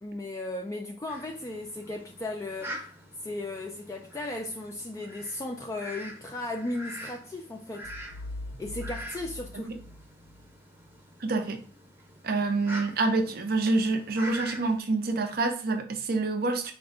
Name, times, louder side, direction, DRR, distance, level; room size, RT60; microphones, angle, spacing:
voice 1, 0.0-2.8 3.2-7.9 8.6-9.7, left 2 dB, 15° left, 0.3 m, -36 dB
Fowl, 1.1-14.8, right 1 dB, 15° right, 0.7 m, -45 dB
sound 1, 7.8-10.5, left 2 dB, 90° left, 0.4 m, -42 dB
voice 2, 11.2-11.6 12.2-16.7, right 3 dB, 55° right, 0.6 m, -27 dB
4.4 x 2.2 x 3.6 m
head